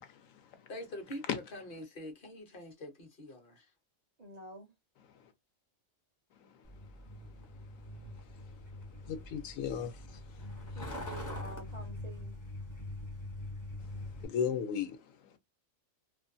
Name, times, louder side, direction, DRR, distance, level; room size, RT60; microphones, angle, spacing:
voice 1, 0.7-3.7, left 1 dB, 50° left, 0.8 m, -45 dB
voice 2, 4.2-4.7 10.7-12.3, right 1 dB, 50° right, 0.5 m, -48 dB
Truck, 6.6-14.3, left 1 dB, 25° left, 0.4 m, -43 dB
voice 3, 9.1-10.0 14.2-15.0, left 7 dB, 80° left, 0.9 m, -34 dB
2.5 x 2.1 x 2.5 m
omnidirectional pair, 1.4 m